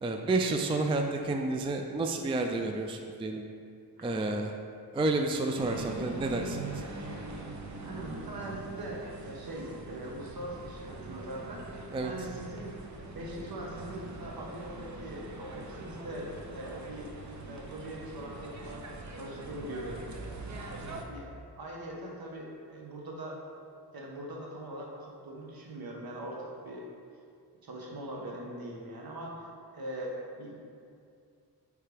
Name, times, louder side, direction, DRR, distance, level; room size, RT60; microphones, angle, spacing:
voice 1, 0.0-3.4 4.0-4.5 4.9-6.6 11.9-12.1, right 2 dB, 15° right, 4 dB, 0.3 m, -30 dB
sound 1, 5.5-21.0, right 2 dB, 45° right, 0.7 m, -42 dB
voice 2, 7.8-12.8 13.1-17.1 17.4-18.8 19.1-20.1 21.1-21.3 21.5-23.4 23.9-26.9 27.6-29.4 29.7-30.5, right 1 dB, 60° right, -2 dB, 1.2 m, -41 dB
8.4 x 3.3 x 3.4 m, 2.4 s
cardioid pair, 70°, 40 cm